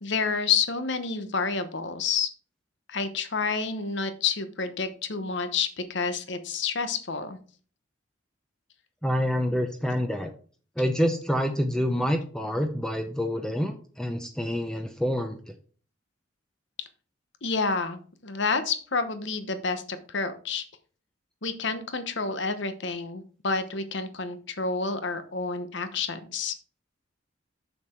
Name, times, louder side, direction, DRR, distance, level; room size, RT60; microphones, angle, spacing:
voice 1, 0.0-2.3 2.9-7.4 17.4-20.6 21.4-26.5, left 5 dB, 60° left, 10 dB, 1.0 m, -29 dB
voice 2, 9.0-10.3 10.8-15.4, equal, 5° left, 6 dB, 0.6 m, -27 dB
6.9 x 6.8 x 4.5 m, 0.41 s
head